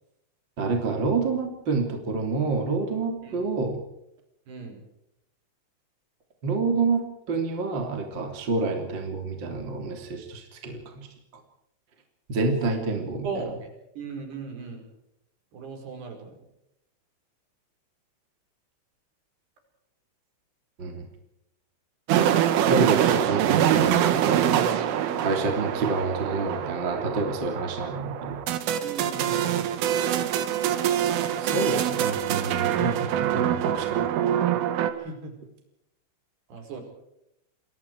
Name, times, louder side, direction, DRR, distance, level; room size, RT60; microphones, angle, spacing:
voice 1, 0.6-3.8 6.4-7.0 7.3-11.1 12.3-13.3 20.8-21.0 22.7-24.4 25.2-28.4 31.4-34.0, right 3 dB, 25° right, 3 dB, 3.1 m, -28 dB
voice 2, 4.5-4.8 13.2-13.7 14.0-14.9 15.5-16.4 28.8-29.7 35.0-35.3 36.5-36.8, right 4 dB, 55° right, 4 dB, 7.0 m, -37 dB
sound 1, 22.1-34.9, right 10 dB, 85° right, 4.2 m, -24 dB
28.5 x 22.0 x 4.8 m, 0.81 s
omnidirectional pair, 5.6 m